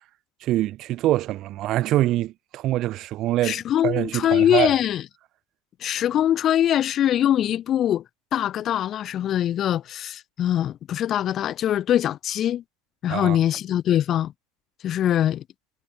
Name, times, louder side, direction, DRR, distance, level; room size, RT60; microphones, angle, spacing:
voice 1, 0.4-4.8 13.1-13.4, right 15 dB, 45° right, 0.8 m, -24 dB
voice 2, 3.4-5.0 5.8-8.0 8.3-12.6 13.0-14.3 14.8-15.4, left 11 dB, 35° left, 0.5 m, -22 dB
figure-of-eight pair, 75°, 0 cm